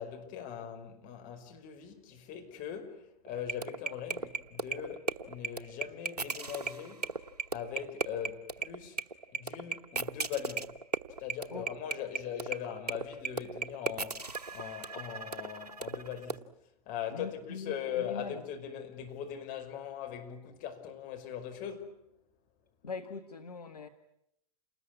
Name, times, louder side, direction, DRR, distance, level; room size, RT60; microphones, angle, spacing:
voice 1, 0.0-7.2 7.5-9.0 9.3-10.8 11.2-16.5 16.9-22.1, left 9 dB, 45° left, 5.5 m, -40 dB
sound 1, 3.3-16.4, right 4 dB, 90° right, 1.0 m, -35 dB
voice 2, 17.1-18.4 22.8-23.9, left 4 dB, 80° left, 1.6 m, -42 dB
28.5 x 20.0 x 9.7 m
figure-of-eight pair, 90°, 20 cm